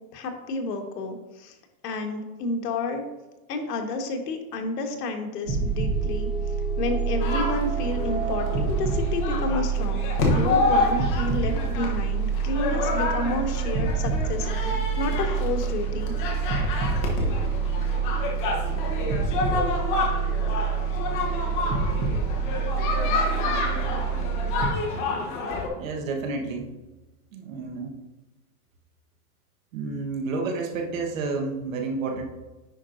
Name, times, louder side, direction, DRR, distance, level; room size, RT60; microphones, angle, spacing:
voice 1, 0.1-1.5 1.8-3.1 3.5-6.3 6.8-16.2, left 3 dB, 90° left, 4 dB, 1.4 m, -30 dB
sound 1, 5.4-24.7, right 6 dB, 15° right, 0.5 m, -27 dB
sound 2, 7.2-25.7, left 3 dB, 35° left, 1.1 m, -29 dB
voice 2, 25.8-26.7 27.3-28.0 29.7-32.2, right 3 dB, 55° right, 3 dB, 1.2 m, -30 dB
10.0 x 5.0 x 2.5 m, 1.1 s
supercardioid pair, 175°, 46 cm